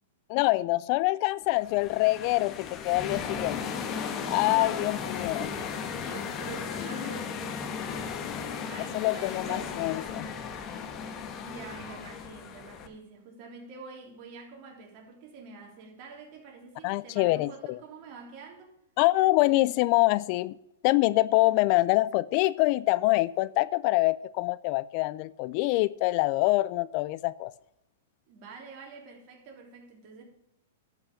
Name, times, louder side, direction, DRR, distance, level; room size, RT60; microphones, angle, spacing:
voice 1, 0.3-3.6 4.3-5.5 8.9-10.3 16.8-17.8 19.0-20.6 20.8-27.5, left 20 dB, 45° left, 0.3 m, -25 dB
sound 1, 1.5-12.9, left 6 dB, 30° left, 1.3 m, -36 dB
voice 2, 4.4-9.7 11.2-18.8 28.3-30.2, right 4 dB, 40° right, 3.2 m, -46 dB
11.5 x 5.8 x 6.5 m
hypercardioid pair, 135°, 0 cm